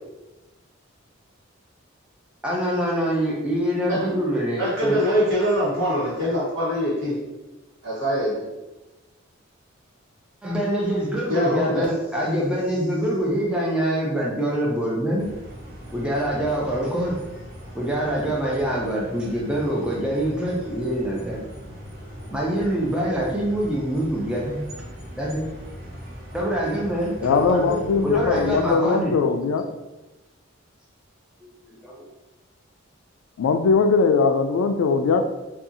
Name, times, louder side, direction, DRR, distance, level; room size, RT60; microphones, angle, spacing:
voice 1, 2.4-5.0 10.4-15.3 15.9-17.2 17.7-21.4 22.3-24.6 25.2-25.5 26.3-29.1 31.4-32.1, right 1 dB, 5° right, -4 dB, 0.4 m, -25 dB
voice 2, 4.6-7.2 7.8-8.5 11.3-11.9, equal, 70° right, -7 dB, 1.1 m, -23 dB
sound 1, 15.2-28.8, equal, 50° right, 0.6 m, -40 dB
voice 3, 27.2-29.6 33.4-35.2, left 4 dB, 75° left, 8 dB, 0.3 m, -20 dB
2.7 x 2.3 x 2.5 m, 1.1 s
head